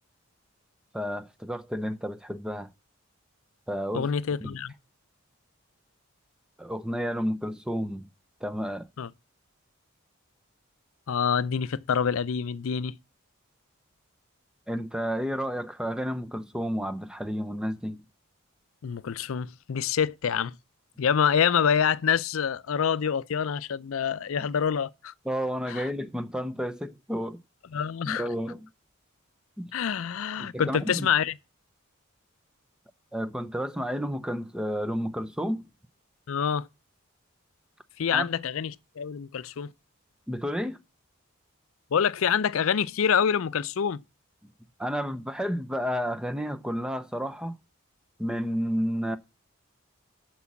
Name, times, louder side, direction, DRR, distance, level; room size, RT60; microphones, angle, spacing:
voice 1, 0.9-2.7 3.7-4.1 4.4-4.6 6.6-8.1 8.4-8.9 14.7-18.0 24.4-24.5 25.3-27.4 28.1-28.7 29.6-29.7 30.4-31.1 33.1-35.6 38.1-38.3 40.3-40.8 44.4-44.5 44.8-47.5 48.2-49.2, equal, 5° right, 0.5 m, -31 dB
voice 2, 3.9-4.7 9.0-9.1 11.1-13.0 18.8-20.6 21.0-25.1 25.7-25.8 27.7-28.3 29.7-31.3 36.3-36.7 38.0-39.7 41.9-44.0, left 7 dB, 75° left, 0.5 m, -26 dB
8.3 x 6.1 x 7.1 m
head